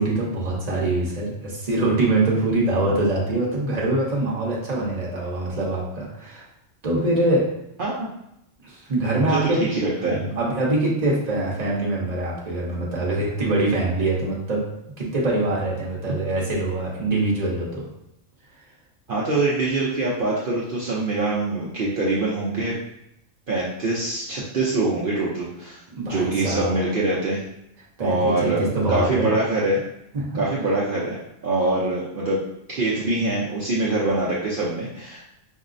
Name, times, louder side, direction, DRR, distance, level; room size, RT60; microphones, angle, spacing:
voice 1, 0.0-6.4 6.8-7.5 8.6-9.6 10.0-14.6 15.0-17.8 25.9-26.8 28.0-29.3 30.1-30.4, right 2 dB, 35° right, -4 dB, 0.9 m, -24 dB
voice 2, 9.2-10.2 19.1-22.7 23.5-25.8 26.0-27.4 28.0-29.8 30.3-32.4 32.7-35.2, right 2 dB, 55° right, -6 dB, 0.6 m, -24 dB
5.3 x 2.0 x 2.5 m, 0.82 s
omnidirectional pair, 1.4 m